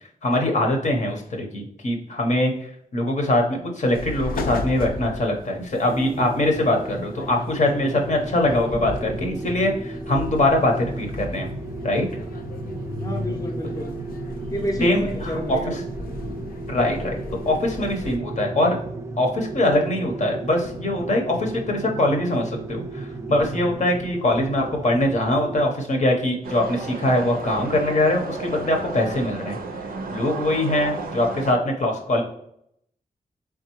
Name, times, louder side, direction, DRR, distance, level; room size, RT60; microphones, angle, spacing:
voice 1, 0.2-2.5 2.9-11.5 11.8-12.1 14.8-15.8 16.7-17.2 17.4-18.8 19.2-29.6 30.1-32.2, left 1 dB, 55° left, 1 dB, 0.8 m, -22 dB
sound 1, 3.9-18.2, left 2 dB, 85° left, 0.4 m, -36 dB
sound 2, 5.9-25.7, right 2 dB, 20° right, 0.4 m, -34 dB
voice 2, 13.0-14.0 14.5-15.7, equal, 25° left, 2 dB, 0.6 m, -29 dB
sound 3, 26.4-31.5, right 4 dB, 90° right, 0.5 m, -33 dB
3.7 x 3.5 x 2.9 m, 0.71 s
wide cardioid pair, 80°, 15 cm